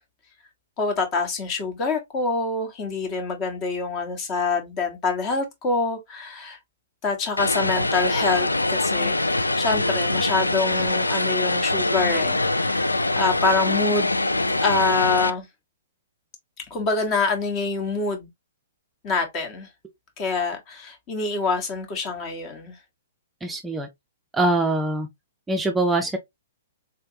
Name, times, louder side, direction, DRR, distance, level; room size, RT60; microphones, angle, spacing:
voice 1, 0.8-6.6 7.0-9.2 9.6-12.9 13.2-14.1 14.5-15.5 16.7-18.3 19.0-19.7 20.2-22.7, left 4 dB, 30° left, 1.5 m, -26 dB
Vehicle, 7.4-15.3, left 2 dB, 90° left, 0.4 m, -23 dB
voice 2, 23.4-23.9 24.3-25.1 25.5-26.2, right 2 dB, 10° right, 0.5 m, -23 dB
3.9 x 3.3 x 2.6 m
figure-of-eight pair, 115°, 0 cm